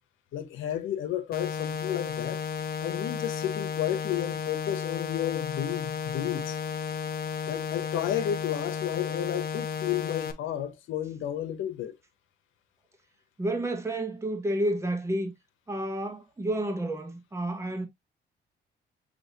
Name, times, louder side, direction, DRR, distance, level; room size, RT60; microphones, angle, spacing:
voice 1, 0.3-2.4 2.8-6.6 7.5-11.9, left 11 dB, 85° left, 1.0 m, -32 dB
sound 1, 1.3-10.3, left 7 dB, 50° left, 0.8 m, -33 dB
voice 2, 13.4-15.3 15.7-17.9, right 1 dB, 15° right, 1.2 m, -30 dB
6.3 x 3.0 x 2.7 m
cardioid pair, 90°, 20 cm